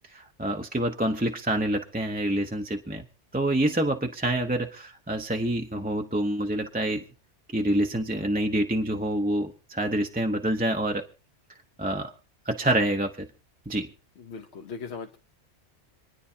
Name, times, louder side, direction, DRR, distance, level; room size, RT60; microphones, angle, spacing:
voice 1, 0.1-3.0 3.3-7.0 7.5-11.1 11.8-12.1 12.5-13.3 13.7-13.9, right 1 dB, 10° right, 4 dB, 0.6 m, -27 dB
voice 2, 14.2-15.2, left 5 dB, 65° left, 3 dB, 1.1 m, -39 dB
27.0 x 10.0 x 2.8 m, 0.37 s
omnidirectional pair, 1.2 m